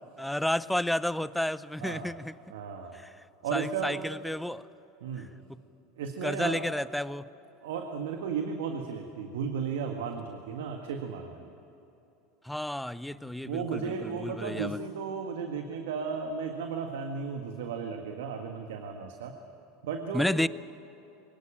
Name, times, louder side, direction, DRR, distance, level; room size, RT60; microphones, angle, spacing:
voice 1, 0.2-2.3 2.9-3.1 3.5-4.6 5.2-5.3 6.2-7.3 12.4-14.8 20.1-20.5, left 1 dB, 5° left, 17 dB, 0.6 m, -31 dB
voice 2, 1.8-2.1 2.5-3.0 3.4-4.0 5.0-5.3 6.0-6.6 7.6-11.5 13.1-13.2 13.4-19.3 19.8-20.4, right 6 dB, 80° right, 4 dB, 1.7 m, -34 dB
23.0 x 18.0 x 8.9 m, 3.0 s
hypercardioid pair, 100°, 0 cm